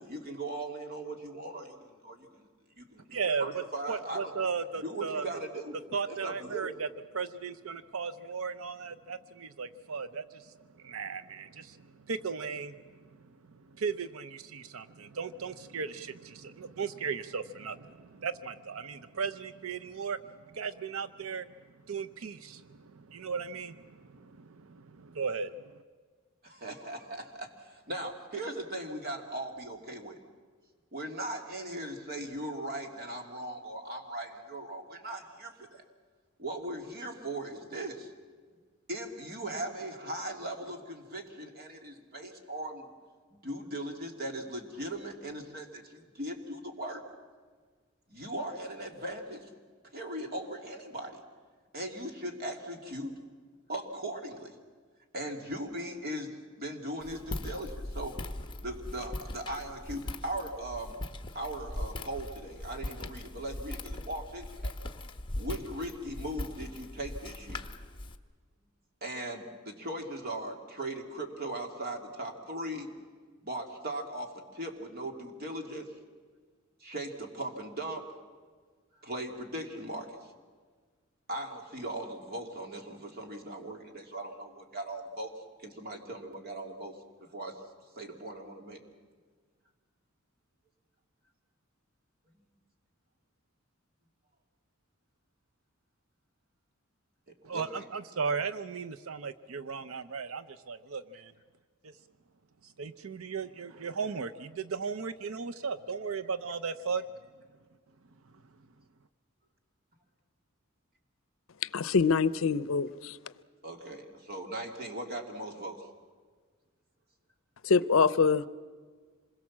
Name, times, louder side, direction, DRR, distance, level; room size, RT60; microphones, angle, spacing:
voice 1, 0.0-2.5 2.7-4.3 4.8-5.8 6.0-6.7 26.4-30.2 30.9-35.8 36.4-38.1 38.9-42.9 43.3-47.0 48.1-49.5 49.9-51.2 51.7-53.1 53.7-54.5 55.1-58.2 58.6-61.0 61.3-64.7 65.4-67.6 69.0-72.9 73.4-75.9 76.8-78.1 79.0-80.2 81.3-85.3 85.6-87.0 87.3-87.6 87.9-88.8 97.5-97.7 113.6-115.9, right 1 dB, 45° right, 2.8 m, -39 dB
voice 2, 3.1-3.6 3.9-5.3 5.9-6.9 7.1-12.8 13.0-13.1 13.5-21.5 21.9-25.8 97.5-101.3 101.8-101.9 102.6-107.0, right 5 dB, 75° right, 0.7 m, -36 dB
Walk footsteps, 57.0-68.2, left 1 dB, 25° left, 1.1 m, -40 dB
voice 3, 111.7-113.2 117.6-118.4, left 5 dB, 70° left, 0.6 m, -25 dB
27.0 x 21.5 x 7.4 m
head